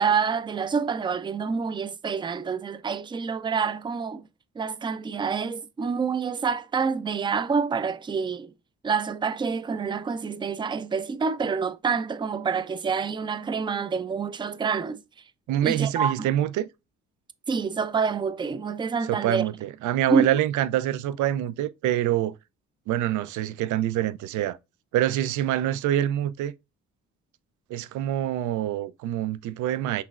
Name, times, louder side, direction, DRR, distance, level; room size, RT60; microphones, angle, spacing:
voice 1, 0.0-4.2 4.6-8.5 8.8-15.0 15.6-16.3 17.5-19.5 20.1-20.3, right 5 dB, 15° right, 0.3 m, -27 dB
voice 2, 15.5-16.7 19.1-22.4 22.9-24.6 24.9-26.5 27.7-30.0, right 12 dB, 75° right, 0.4 m, -25 dB
5.8 x 3.1 x 2.4 m
cardioid pair, 90°, 30 cm